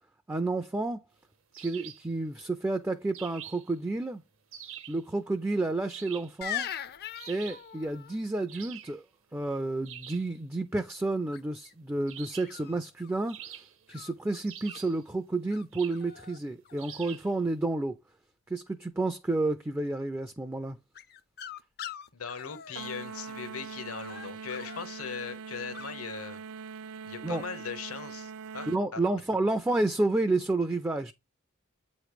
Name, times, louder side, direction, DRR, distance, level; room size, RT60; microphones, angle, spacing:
voice 1, 0.3-1.0 1.6-4.2 4.9-6.7 7.3-9.0 9.3-13.6 13.9-17.9 18.5-20.8 27.2-27.4 28.7-31.1, right 2 dB, 10° right, 0.4 m, -30 dB
sound 1, 1.5-2.1 3.1-3.7 4.5-5.0 5.9-6.4 7.1-7.7 8.5-9.0 9.8-10.3 12.1-12.6 13.3-14.0 14.5-15.0 15.7-16.1 16.8-17.3, right 10 dB, 65° right, 0.8 m, -45 dB
sound 2, 6.4-8.2 11.3-11.7 12.4-13.3 13.9-14.8 15.5-15.6 15.9-16.4 16.6-17.3 20.9-23.5 24.0-24.9 25.7-25.9, left 10 dB, 45° left, 0.5 m, -42 dB
voice 2, 22.1-26.4 27.0-29.0, left 6 dB, 75° left, 1.0 m, -39 dB
sound 3, 22.8-28.8, right 5 dB, 85° right, 0.4 m, -42 dB
8.1 x 3.1 x 5.0 m
head